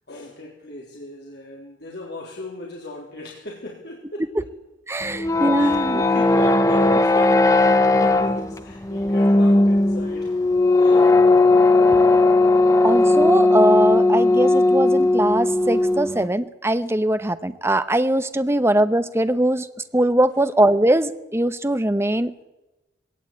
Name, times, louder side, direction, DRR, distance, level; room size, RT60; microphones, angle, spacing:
voice 1, 0.1-4.6 5.1-10.5 10.8-11.2 12.0-12.6, left 1 dB, 55° left, -1 dB, 3.5 m, -38 dB
voice 2, 4.9-6.0 12.8-19.7 19.9-22.5, right 1 dB, 15° right, 11 dB, 0.9 m, -21 dB
sound 1, 5.0-16.3, left 2 dB, 15° left, 0.8 m, -17 dB
20.0 x 18.0 x 8.6 m, 1.0 s
head